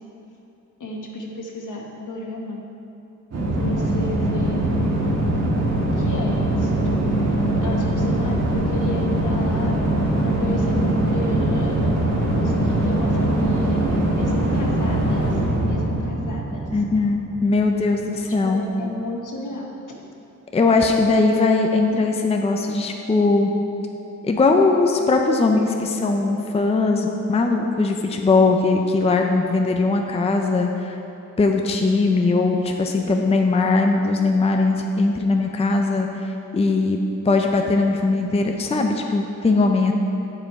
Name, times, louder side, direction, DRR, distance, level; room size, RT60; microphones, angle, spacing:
voice 1, 0.8-2.6 3.5-5.3 5.8-7.1 7.6-9.7 10.2-15.3 15.6-16.6 18.5-19.7, left 2 dB, 75° left, 0 dB, 1.2 m, -33 dB
sound 1, 3.3-17.7, right 1 dB, 55° right, 1.4 m, -22 dB
voice 2, 16.7-18.7 20.5-23.5 24.2-31.0 31.4-36.3 36.5-37.0 37.3-39.9, left 3 dB, 20° left, 3 dB, 0.4 m, -20 dB
9.9 x 5.0 x 4.6 m, 2.8 s
wide cardioid pair, 170°, 31 cm